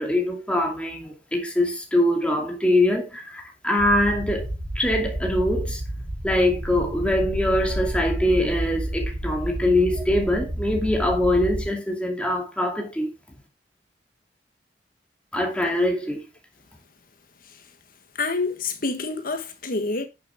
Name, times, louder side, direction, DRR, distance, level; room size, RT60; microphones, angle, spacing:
voice 1, 0.0-5.8 6.2-13.1 15.3-16.2, left 1 dB, 5° left, 2.5 m, -23 dB
sound 1, 3.8-11.7, right 1 dB, 90° right, 5.3 m, -30 dB
voice 2, 18.2-20.1, left 3 dB, 55° left, 1.5 m, -27 dB
10.5 x 7.0 x 3.7 m
head